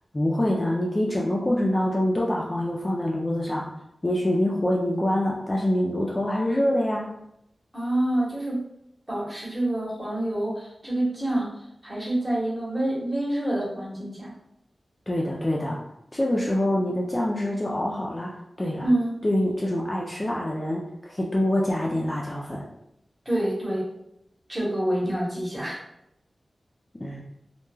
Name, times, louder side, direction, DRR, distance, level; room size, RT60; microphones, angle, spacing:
voice 1, 0.1-3.7 4.0-7.1 15.1-15.8 16.1-18.9 19.2-22.6 27.0-27.2, left 1 dB, 25° left, -3 dB, 0.3 m, -25 dB
voice 2, 7.7-8.6 9.1-11.5 11.8-14.3 18.8-19.2 23.3-23.8 24.5-25.8, right 1 dB, 20° right, -6 dB, 0.9 m, -27 dB
2.2 x 2.1 x 3.1 m, 0.82 s
wide cardioid pair, 100°, 0 cm